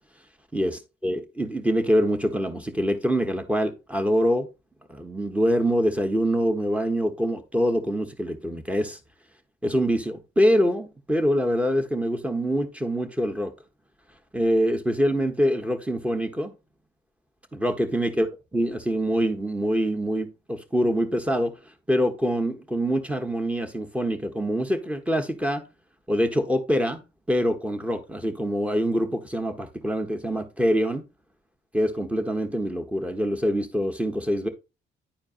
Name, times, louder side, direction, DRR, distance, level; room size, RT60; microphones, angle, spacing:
voice 1, 0.5-4.5 4.9-9.0 9.6-13.5 14.3-16.5 17.5-18.3 18.5-21.5 21.9-25.6 26.1-27.0 27.3-31.0 31.7-34.5, equal, 5° right, 1.2 m, -25 dB
10.0 x 4.4 x 2.6 m
cardioid pair, 90°, 20 cm